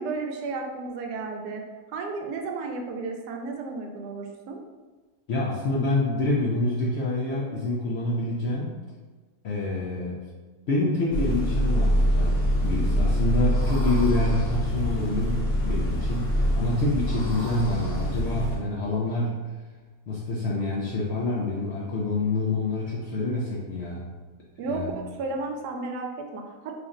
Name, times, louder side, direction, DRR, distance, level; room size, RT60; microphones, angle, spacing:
voice 1, 0.0-1.6 1.9-4.6 24.6-26.7, right 3 dB, 75° right, 2 dB, 1.1 m, -33 dB
voice 2, 5.3-8.8 9.4-10.2 10.7-19.4 20.1-24.1 24.6-25.1, left 2 dB, 70° left, -5 dB, 0.6 m, -27 dB
sound 1, 11.1-18.6, equal, 55° left, 1.2 m, -25 dB
3.9 x 3.2 x 2.5 m, 1.3 s
omnidirectional pair, 1.8 m